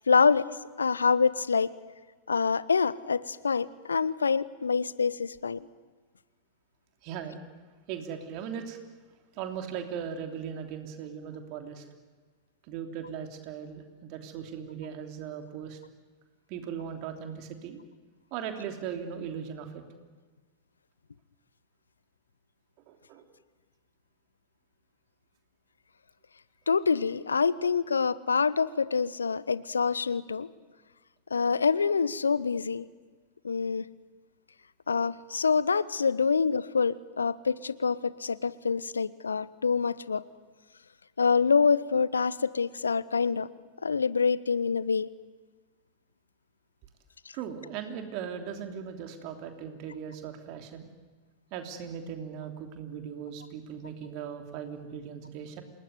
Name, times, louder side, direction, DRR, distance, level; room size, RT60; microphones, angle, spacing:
voice 1, 0.1-0.5 0.8-1.7 2.3-5.6 26.7-30.5 31.3-32.9 33.4-33.9 34.9-40.2 41.2-43.5 43.8-45.1, left 5 dB, 75° left, 19 dB, 0.8 m, -26 dB
voice 2, 7.0-7.4 7.9-8.8 9.4-11.8 12.7-15.8 16.5-17.8 18.3-19.8 22.9-23.2 47.3-50.9 51.5-55.6, right 8 dB, 45° right, 5 dB, 3.2 m, -38 dB
28.0 x 19.5 x 9.5 m, 1.4 s
figure-of-eight pair, 90°, 0 cm